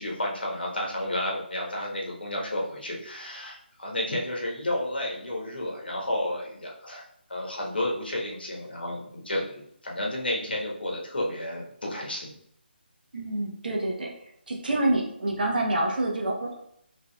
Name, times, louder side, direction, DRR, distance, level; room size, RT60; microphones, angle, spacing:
voice 1, 0.0-7.0 7.3-12.3, left 1 dB, 65° left, -2 dB, 1.3 m, -31 dB
voice 2, 13.1-14.1 14.5-16.6, right 1 dB, 55° right, -1 dB, 1.1 m, -27 dB
5.3 x 3.1 x 2.3 m, 0.70 s
figure-of-eight pair, 150°, 6 cm